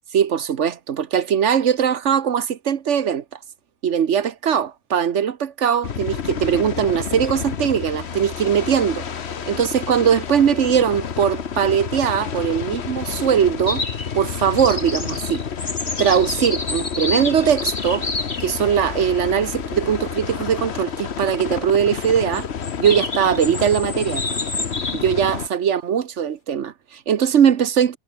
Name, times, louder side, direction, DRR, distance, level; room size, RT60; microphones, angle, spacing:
voice 1, 0.1-3.2 3.8-9.0 9.5-13.8 14.1-15.4 16.0-18.1 18.4-22.5 22.8-24.2 24.9-28.0, right 8 dB, 80° right, 1.3 m, -20 dB
sound 1, 5.8-25.5, left 7 dB, 65° left, 1.4 m, -30 dB
sound 2, 13.3-24.1, right 1 dB, 30° right, 6.1 m, -53 dB
sound 3, 13.7-14.2 14.6-18.5 22.0-25.1, left 2 dB, 45° left, 2.9 m, -29 dB
omnidirectional pair, 1.2 m